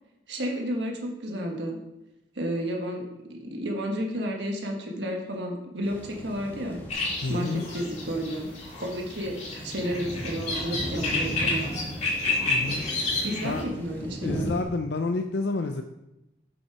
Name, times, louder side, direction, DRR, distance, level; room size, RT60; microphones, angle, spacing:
voice 1, 0.3-1.8 2.3-6.8 7.3-8.5 8.8-9.4 9.6-11.7 13.2-14.5, equal, 80° right, 1 dB, 1.4 m, -31 dB
sound 1, 5.8-14.6, equal, 10° left, 1.5 m, -38 dB
sound 2, 6.9-13.6, left 3 dB, 40° left, 1.9 m, -30 dB
voice 2, 7.2-7.6 12.4-13.6 14.2-15.8, left 3 dB, 70° left, 6 dB, 0.5 m, -30 dB
7.0 x 5.9 x 4.7 m, 0.93 s
head